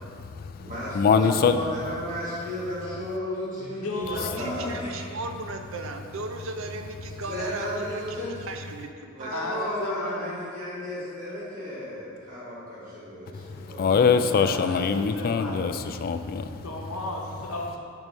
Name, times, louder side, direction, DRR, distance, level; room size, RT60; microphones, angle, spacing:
voice 1, 0.0-1.6 13.3-16.6, left 6 dB, 45° left, 9 dB, 0.3 m, -24 dB
voice 2, 0.6-4.8 7.3-8.4 9.2-14.3, left 1 dB, 40° right, -9 dB, 1.6 m, -34 dB
voice 3, 3.6-5.2 9.3-10.4 14.0-15.6 16.2-16.3 16.6-17.8, left 1 dB, 85° left, 0 dB, 0.9 m, -34 dB
voice 4, 4.4-8.0 8.5-9.3, right 3 dB, 65° right, 5 dB, 0.5 m, -36 dB
5.5 x 4.6 x 5.3 m, 2.3 s
head